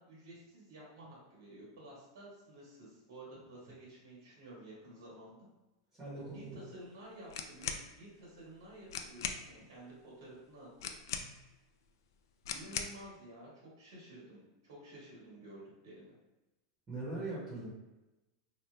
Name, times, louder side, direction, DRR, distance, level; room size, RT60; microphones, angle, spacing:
voice 1, 0.0-5.4 6.1-10.7 12.5-16.1, right 1 dB, 75° right, -5 dB, 1.3 m, -52 dB
voice 2, 6.0-6.6 11.2-11.3 16.9-17.7, right 2 dB, 15° right, -8 dB, 0.9 m, -41 dB
sound 1, 7.3-7.9 8.6-8.7 8.9-9.4 10.8-11.5 12.4-13.0, left 7 dB, 70° left, 0.3 m, -39 dB
2.8 x 2.3 x 3.2 m, 1.0 s
supercardioid pair, 165°, 2 cm